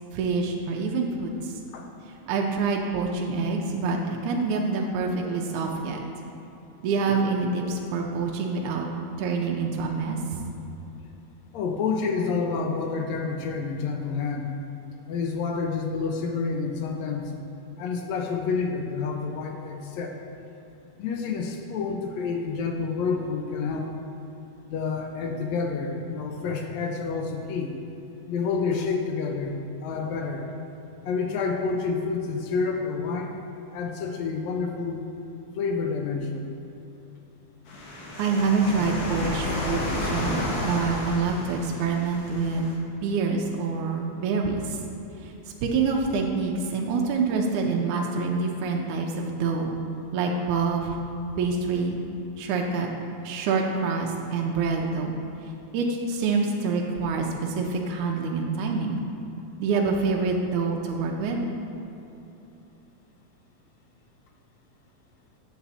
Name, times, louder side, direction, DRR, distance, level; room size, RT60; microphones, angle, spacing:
voice 1, 0.1-1.6 2.1-6.0 6.8-8.9 9.2-10.2 38.2-40.4 40.6-42.7 43.0-44.8 45.2-45.3 45.6-49.7 50.1-51.0 51.4-52.0 52.4-52.9 53.2-55.2 55.7-59.0 59.6-61.4, right 4 dB, 80° right, 0 dB, 2.0 m, -26 dB
voice 2, 11.5-14.6 15.1-17.3 17.8-20.2 21.0-24.0 24.7-27.8 28.2-30.4 31.0-33.3 33.7-35.0 35.6-36.5, left 5 dB, 75° left, 3 dB, 1.6 m, -29 dB
sound 1, 37.7-42.8, left 1 dB, 60° left, 2.0 m, -31 dB
8.5 x 6.8 x 4.1 m, 2.9 s
omnidirectional pair, 3.5 m